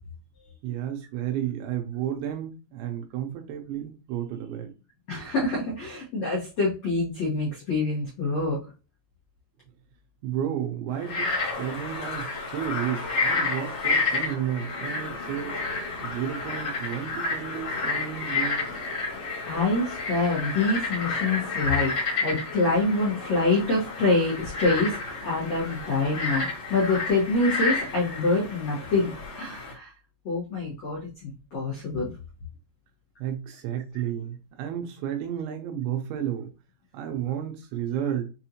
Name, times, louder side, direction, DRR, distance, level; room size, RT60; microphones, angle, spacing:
voice 1, 0.6-4.7 10.2-15.5 16.0-18.7 33.2-36.5 36.9-38.2, right 10 dB, 80° right, 4 dB, 2.9 m, -32 dB
voice 2, 5.1-8.6 19.4-21.9 22.2-29.9 30.2-32.1, left 3 dB, 90° left, -6 dB, 1.5 m, -26 dB
Frog, 11.0-29.7, left 3 dB, 55° left, 1.6 m, -30 dB
7.0 x 2.6 x 2.9 m, 0.32 s
omnidirectional pair, 5.5 m